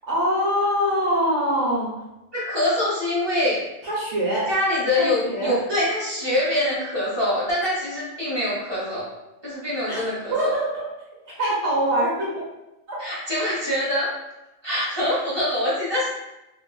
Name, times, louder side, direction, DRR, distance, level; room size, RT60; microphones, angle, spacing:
voice 1, 0.1-1.9 3.8-4.5 5.0-5.6 9.9-10.0 10.3-10.9 11.2-12.3 12.9-13.2, equal, 65° right, -6 dB, 0.9 m, -23 dB
voice 2, 2.3-3.6 4.5-9.1 9.4-10.5 13.0-14.1 14.6-16.1, left 1 dB, 25° right, -8 dB, 0.9 m, -24 dB
2.8 x 2.4 x 2.3 m, 0.94 s
omnidirectional pair, 1.3 m